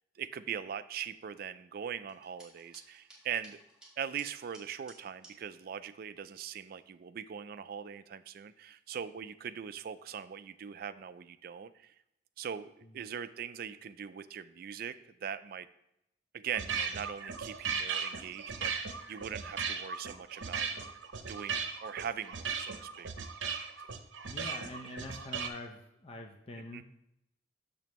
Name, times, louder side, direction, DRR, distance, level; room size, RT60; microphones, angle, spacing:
voice 1, 0.2-3.6 4.0-11.9 12.4-15.0 15.2-15.7 16.3-20.9 21.3-23.1 26.7-26.8, right 8 dB, 55° right, 13 dB, 0.3 m, -41 dB
sound 1, 2.1-5.3, right 2 dB, 5° right, 1.6 m, -57 dB
sound 2, 16.5-25.5, right 6 dB, 90° right, 0.7 m, -37 dB
voice 2, 24.2-26.8, left 2 dB, 30° left, 3 dB, 0.6 m, -45 dB
6.9 x 6.6 x 3.0 m, 0.82 s
head